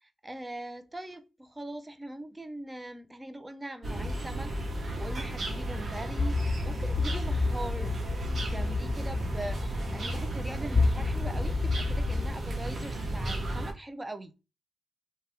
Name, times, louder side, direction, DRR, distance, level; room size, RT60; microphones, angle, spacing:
voice 1, 0.0-8.0 8.4-14.3, right 1 dB, 20° right, 0.5 m, -41 dB
sound 1, 3.8-13.7, right 1 dB, 50° right, 1.0 m, -34 dB
sound 2, 6.2-12.3, left 3 dB, 15° left, 1.3 m, -30 dB
2.9 x 2.2 x 3.3 m
supercardioid pair, 60°, 0 cm